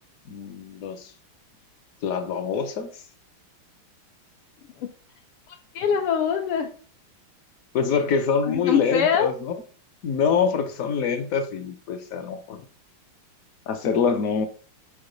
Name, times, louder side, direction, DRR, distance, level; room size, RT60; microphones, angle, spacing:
voice 1, 0.3-1.1 2.0-2.9 7.7-9.5 10.0-12.6 13.7-14.5, left 6 dB, 65° left, 0.8 m, -25 dB
voice 2, 5.5-6.7 8.5-9.3, left 7 dB, 85° left, 1.7 m, -24 dB
5.0 x 4.7 x 5.1 m
omnidirectional pair, 2.4 m